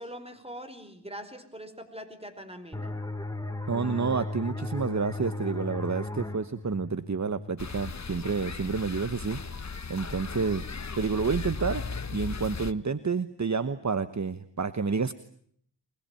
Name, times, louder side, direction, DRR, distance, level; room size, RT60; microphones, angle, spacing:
voice 1, 0.0-2.9, equal, 15° right, 10 dB, 5.0 m, -42 dB
sound 1, 2.7-8.1, left 2 dB, 10° left, 3.4 m, -36 dB
voice 2, 3.7-10.6 11.0-11.8 12.1-15.1, right 5 dB, 40° right, 13 dB, 1.2 m, -29 dB
sound 2, 7.6-12.7, left 4 dB, 40° left, 1.2 m, -36 dB
25.5 x 21.0 x 9.1 m, 0.64 s
cardioid pair, 50°, 41 cm